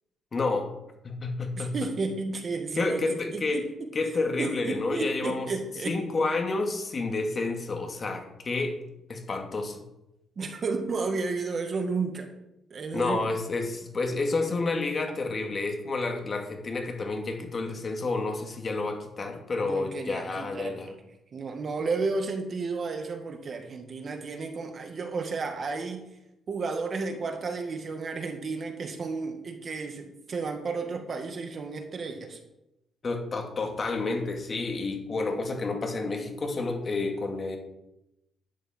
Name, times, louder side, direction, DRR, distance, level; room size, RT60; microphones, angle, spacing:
voice 1, 0.3-0.7 1.0-1.7 2.8-3.6 3.9-5.5 5.8-8.8 9.1-9.8 12.9-20.9 33.0-37.6, left 3 dB, 40° left, 3 dB, 2.4 m, -30 dB
voice 2, 1.6-3.9 4.4-6.0 10.4-12.3 12.7-13.3 19.6-21.0 21.3-26.1 26.5-32.4, right 4 dB, 45° right, 5 dB, 1.9 m, -32 dB
11.5 x 10.5 x 4.5 m, 0.88 s
cardioid pair, 90°, 0 cm